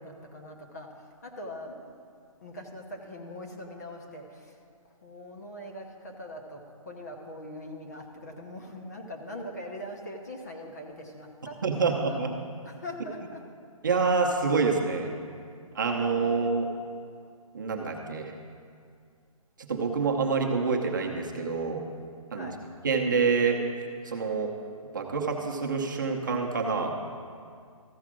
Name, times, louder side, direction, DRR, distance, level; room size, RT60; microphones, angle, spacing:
voice 1, 0.0-1.9 2.4-12.2 12.6-13.4 22.3-22.6, left 1 dB, 30° left, 2 dB, 0.8 m, -42 dB
voice 2, 11.6-12.3 13.8-15.1 15.7-16.7 17.5-18.3 19.7-21.8 22.3-22.5 22.8-23.6 24.0-24.5 24.9-26.9, right 4 dB, 35° right, 1 dB, 0.8 m, -27 dB
14.0 x 4.8 x 6.2 m, 2.2 s
hypercardioid pair, 175°, 18 cm